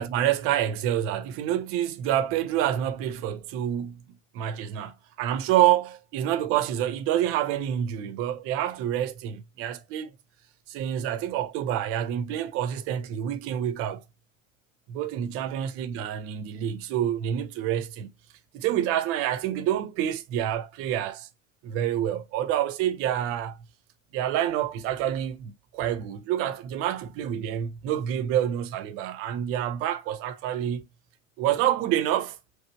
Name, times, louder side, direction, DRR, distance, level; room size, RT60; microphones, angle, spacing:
voice 1, 0.0-4.0 4.3-10.1 10.7-14.0 14.9-18.1 18.5-21.3 21.6-23.6 24.1-30.9 31.4-32.4, right 11 dB, 35° right, 0.6 m, -27 dB
5.0 x 2.1 x 4.3 m
figure-of-eight pair, 80°, 41 cm